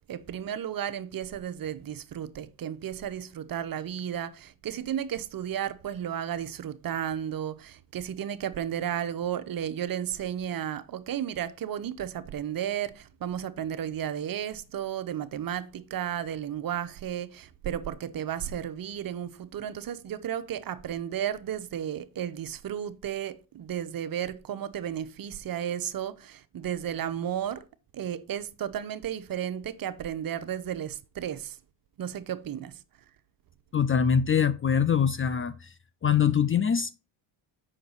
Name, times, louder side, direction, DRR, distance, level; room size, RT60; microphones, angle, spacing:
voice 1, 0.1-27.6 27.9-31.6 32.0-32.8, right 10 dB, 45° right, 0.8 m, -33 dB
voice 2, 33.7-35.7 36.0-36.9, left 7 dB, 25° left, 0.4 m, -23 dB
6.6 x 5.7 x 4.0 m
supercardioid pair, 70°, 49 cm